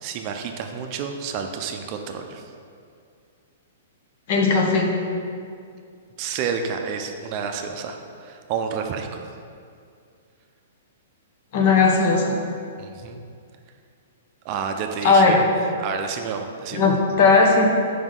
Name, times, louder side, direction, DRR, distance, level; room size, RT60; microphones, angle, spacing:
voice 1, 0.0-2.4 6.2-9.2 12.8-13.2 14.4-15.4 15.8-17.0, right 6 dB, 35° right, 4 dB, 0.5 m, -30 dB
voice 2, 4.3-4.9 11.5-12.4 15.0-15.4 16.7-17.7, left 4 dB, 50° left, 1 dB, 1.0 m, -17 dB
6.1 x 5.0 x 3.8 m, 2.3 s
hypercardioid pair, 150°, 0 cm